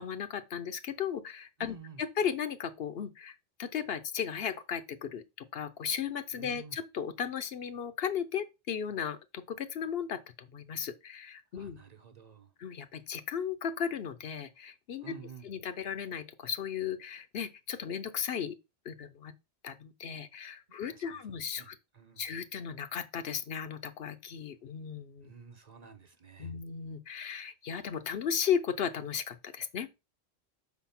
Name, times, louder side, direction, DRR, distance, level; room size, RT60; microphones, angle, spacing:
voice 1, 0.0-11.8 12.6-15.1 15.4-18.6 18.8-19.3 19.6-21.8 22.2-25.3 26.4-30.0, left 7 dB, 65° left, 0.9 m, -36 dB
voice 2, 1.6-2.0 6.3-6.8 11.5-12.5 15.0-15.5 20.9-22.3 25.2-26.6, right 4 dB, 40° right, 1.0 m, -51 dB
6.3 x 4.2 x 5.7 m
omnidirectional pair, 1.1 m